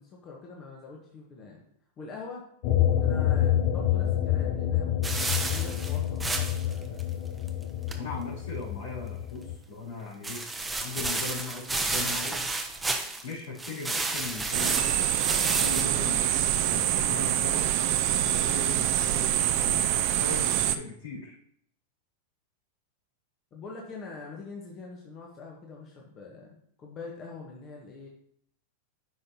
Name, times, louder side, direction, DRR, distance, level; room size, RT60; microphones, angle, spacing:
voice 1, 0.0-1.6 2.0-2.5 3.0-7.0 23.5-28.1, left 4 dB, 35° left, -1 dB, 1.5 m, -44 dB
sound 1, 2.6-9.6, left 11 dB, 55° left, 0.8 m, -27 dB
sound 2, 5.0-6.7 7.0-7.1 7.5-7.6 7.9-8.0 10.2-13.3 13.6-15.8, right 2 dB, 10° right, 0.9 m, -31 dB
voice 2, 8.0-10.4 10.8-12.4 13.2-14.9 15.5-16.3 16.6-17.7 18.2-21.3, left 3 dB, 75° left, -6 dB, 3.4 m, -39 dB
sound 3, 14.5-20.8, right 12 dB, 50° right, 0.5 m, -25 dB
9.5 x 5.6 x 3.0 m, 0.66 s
hypercardioid pair, 100°, 0 cm